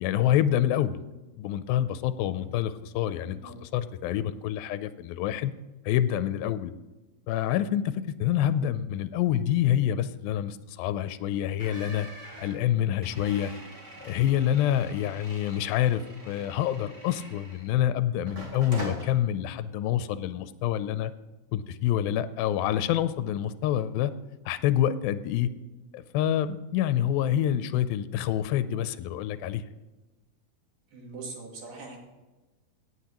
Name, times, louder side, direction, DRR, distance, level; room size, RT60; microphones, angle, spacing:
voice 1, 0.0-1.0 1.4-5.5 5.9-6.7 7.3-7.9 8.2-12.1 12.4-13.5 14.0-21.1 21.5-24.1 24.5-25.5 25.9-29.6, left 11 dB, 85° left, 13 dB, 2.4 m, -27 dB
voice 2, 3.2-3.6 27.6-27.8 30.9-32.0, right 3 dB, 75° right, 0 dB, 4.0 m, -42 dB
sound 1, 11.6-17.8 18.3-19.1, right 1 dB, 25° right, 1.9 m, -43 dB
17.5 x 7.9 x 3.0 m, 1.1 s
omnidirectional pair, 4.1 m